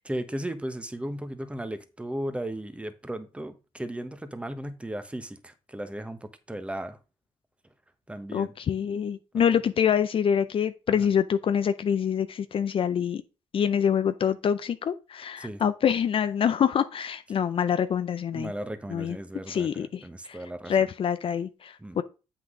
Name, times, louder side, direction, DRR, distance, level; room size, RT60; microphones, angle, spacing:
voice 1, 0.0-7.0 8.1-8.5 9.3-9.4 15.4-15.6 18.3-20.9 21.8-22.0, right 1 dB, 10° right, 1.1 m, -36 dB
voice 2, 8.3-13.2 13.5-18.5 18.9-19.2 19.5-20.4 20.7-22.0, left 8 dB, 50° left, 0.5 m, -26 dB
7.8 x 6.0 x 3.7 m
cardioid pair, 80°, 12 cm